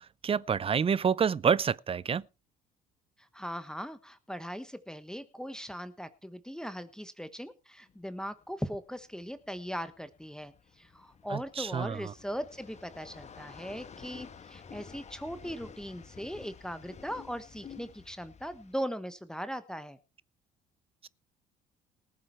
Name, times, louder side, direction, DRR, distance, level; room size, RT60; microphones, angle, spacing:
voice 1, 0.0-2.2 11.3-12.1, right 7 dB, 30° right, 0.6 m, -28 dB
voice 2, 3.2-20.0, equal, 5° left, 1.2 m, -39 dB
sound 1, 7.9-18.7, left 6 dB, 35° left, 1.4 m, -51 dB
19.0 x 7.7 x 4.5 m
hypercardioid pair, 65°, 19 cm